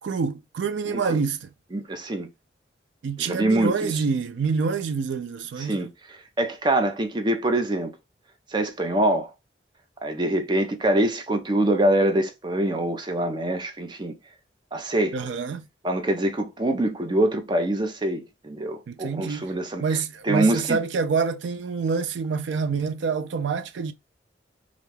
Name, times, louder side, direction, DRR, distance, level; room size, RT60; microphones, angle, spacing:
voice 1, 0.0-1.5 3.0-5.8 15.1-15.7 18.9-19.5 19.8-23.9, right 5 dB, 80° right, 0.4 m, -27 dB
voice 2, 1.7-2.3 3.2-4.0 5.6-5.9 6.4-7.9 8.5-9.3 10.0-14.1 14.7-15.2 15.8-19.8 20.2-20.8, right 1 dB, 25° right, 0.5 m, -24 dB
2.5 x 2.2 x 3.2 m
head